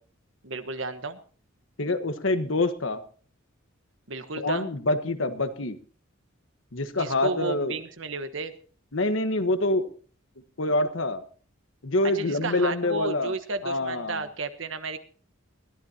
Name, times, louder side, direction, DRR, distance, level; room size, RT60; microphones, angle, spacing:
voice 1, 0.4-1.2 4.1-4.7 6.9-8.5 12.0-15.0, right 3 dB, 65° right, 10 dB, 1.3 m, -33 dB
voice 2, 1.8-3.0 4.4-5.8 6.7-7.7 8.9-9.9 10.6-11.2 11.8-13.3 13.6-14.2, left 2 dB, 70° left, 9 dB, 1.4 m, -26 dB
21.0 x 15.0 x 2.9 m, 0.42 s
head